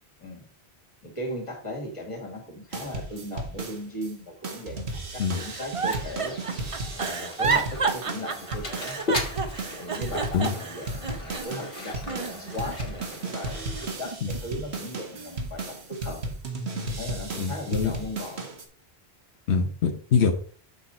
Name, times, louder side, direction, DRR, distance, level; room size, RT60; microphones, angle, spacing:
voice 1, 1.0-6.4 7.0-9.0 9.8-16.3 16.9-18.5, left 1 dB, 30° left, 1 dB, 2.2 m, -37 dB
sound 1, 2.7-4.1 4.4-18.6, right 2 dB, 75° right, 1.7 m, -35 dB
Giggle, 5.3-11.7 12.1-13.0 13.5-14.6 15.1-15.5, right 5 dB, 35° right, 0.7 m, -31 dB
Mechanisms, 5.8-13.9, left 2 dB, 60° left, 1.8 m, -38 dB
voice 2, 17.4-17.9 19.5-20.3, left 6 dB, 80° left, 4 dB, 1.2 m, -24 dB
6.8 x 6.2 x 4.3 m, 0.43 s
omnidirectional pair, 1.1 m